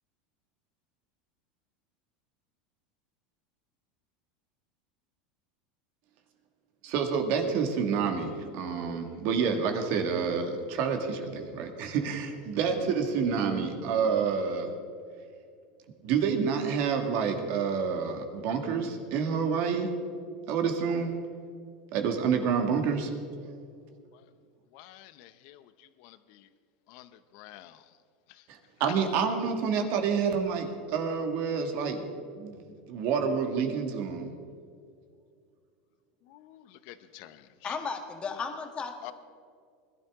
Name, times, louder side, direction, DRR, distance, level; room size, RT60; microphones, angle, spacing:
voice 1, 6.8-14.7 16.0-19.9 20.5-21.1 21.9-23.1 23.4-23.5 28.5-32.0 32.4-32.6 32.9-34.3, right 6 dB, 55° right, 4 dB, 1.9 m, -28 dB
voice 2, 24.7-26.5 26.9-27.9 28.3-28.4 28.8-28.9 36.2-37.8 39.0-39.1, left 15 dB, 60° left, 13 dB, 0.8 m, -49 dB
voice 3, 37.6-39.1, left 5 dB, 25° left, 5 dB, 1.6 m, -35 dB
20.5 x 12.0 x 3.7 m, 2.2 s
supercardioid pair, 135°, 4 cm